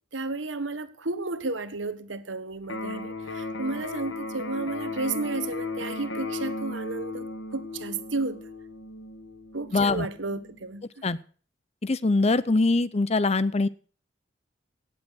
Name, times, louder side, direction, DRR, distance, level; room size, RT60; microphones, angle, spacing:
voice 1, 0.1-8.4 9.5-10.9, right 3 dB, 80° right, 1.4 m, -32 dB
Electric guitar, 2.6-10.6, left 2 dB, 80° left, 2.0 m, -36 dB
voice 2, 9.7-10.1 11.0-11.2 11.8-13.7, left 3 dB, 35° left, 0.6 m, -23 dB
17.5 x 7.8 x 6.3 m
head